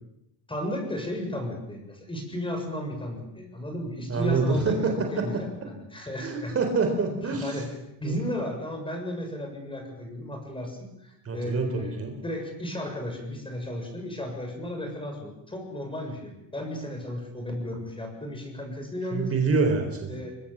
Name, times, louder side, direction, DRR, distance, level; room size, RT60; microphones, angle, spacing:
voice 1, 0.5-6.6 7.2-19.3 20.1-20.4, left 1 dB, 10° left, 4 dB, 7.1 m, -34 dB
voice 2, 4.1-5.4 6.2-7.6 8.0-8.2 11.3-12.2 19.1-20.2, right 4 dB, 30° right, 4 dB, 3.9 m, -26 dB
24.0 x 22.0 x 7.4 m, 0.85 s
cardioid pair, 125°, 43 cm